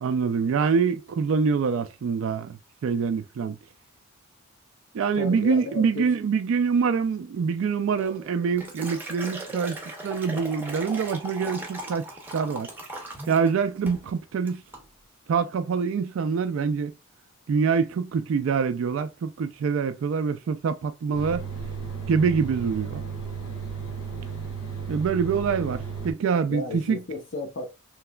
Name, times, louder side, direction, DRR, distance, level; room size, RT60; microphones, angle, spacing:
voice 1, 0.0-3.6 4.9-9.8 10.0-12.1 12.3-12.7 13.3-14.6 15.3-16.9 17.5-21.5 22.1-23.0 24.9-27.0, right 5 dB, 60° right, 0.3 m, -25 dB
voice 2, 5.2-6.1 26.5-27.7, left 3 dB, 55° left, 0.7 m, -33 dB
Liquid, 8.0-13.5 13.9-14.1 14.5-14.8, right 1 dB, 10° right, 0.6 m, -38 dB
sound 1, 21.1-26.1, right 6 dB, 85° left, 1.4 m, -34 dB
3.2 x 2.8 x 2.2 m
head